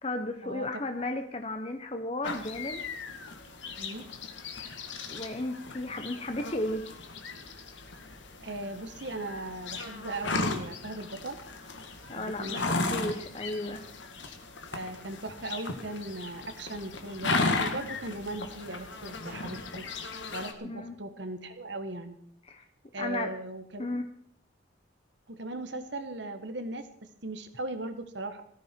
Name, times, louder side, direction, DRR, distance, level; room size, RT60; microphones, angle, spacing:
voice 1, 0.0-2.8 4.7-4.8 5.1-6.9 12.1-13.8 20.6-21.0 22.5-22.6 23.0-23.3 23.8-24.0, left 2 dB, 30° left, 6 dB, 1.0 m, -34 dB
sound 1, 2.2-20.5, left 3 dB, 75° left, 2.0 m, -36 dB
voice 2, 8.4-11.4 12.1-13.2 14.7-19.9 20.3-22.2 22.9-24.0 25.3-26.9 27.2-28.4, right 2 dB, 70° right, 9 dB, 1.5 m, -38 dB
18.0 x 14.5 x 4.6 m, 0.63 s
head